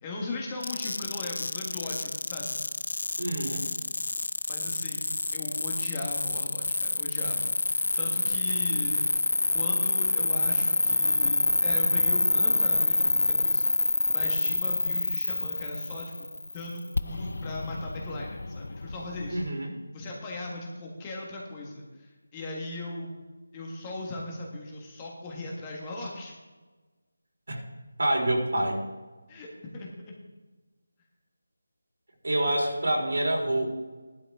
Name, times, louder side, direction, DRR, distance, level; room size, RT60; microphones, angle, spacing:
voice 1, 0.0-2.6 4.5-7.5 7.9-9.1 9.5-19.4 19.9-23.1 23.5-26.3 29.3-30.1 32.4-32.9, left 2 dB, 15° left, -2 dB, 1.5 m, -38 dB
sound 1, 0.6-19.5, left 2 dB, 70° left, 0.5 m, -27 dB
voice 2, 3.2-3.6 19.3-19.7 27.5-27.6 28.0-28.8 32.2-33.7, right 1 dB, 70° right, -1 dB, 4.0 m, -27 dB
16.0 x 11.5 x 3.6 m, 1.3 s
figure-of-eight pair, 175°, 0 cm